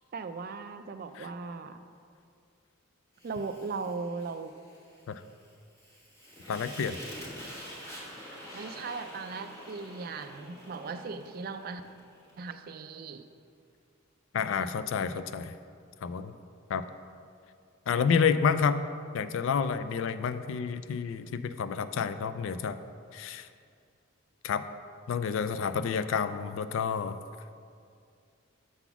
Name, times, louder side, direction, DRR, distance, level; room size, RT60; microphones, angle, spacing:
voice 1, 0.1-1.8 3.2-4.5 8.5-11.8 12.4-13.3 15.2-15.3, right 4 dB, 45° right, 9 dB, 0.3 m, -38 dB
Fire, 3.2-12.4, equal, 15° left, 1.5 m, -47 dB
voice 2, 6.5-7.0 14.3-15.5 16.0-16.3 16.7-16.8 17.9-18.8 19.1-22.8 23.1-23.5 24.4-24.6 25.1-27.2, left 6 dB, 70° left, 12 dB, 0.3 m, -29 dB
6.9 x 4.0 x 5.8 m, 2.3 s
head